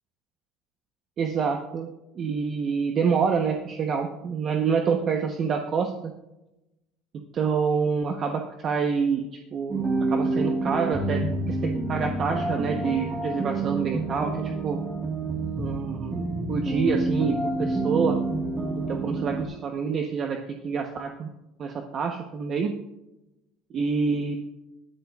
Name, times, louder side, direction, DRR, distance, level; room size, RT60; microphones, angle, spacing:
voice 1, 1.2-1.9 2.1-6.1 7.3-9.3 9.5-14.8 15.6-18.2 18.9-20.4 20.6-21.3 21.6-22.7 23.7-24.4, right 5 dB, 30° right, 3 dB, 0.9 m, -27 dB
sound 1, 9.7-19.4, right 2 dB, 15° right, 1.5 m, -28 dB
20.5 x 10.5 x 2.4 m, 0.94 s
cardioid pair, 165°, 0 cm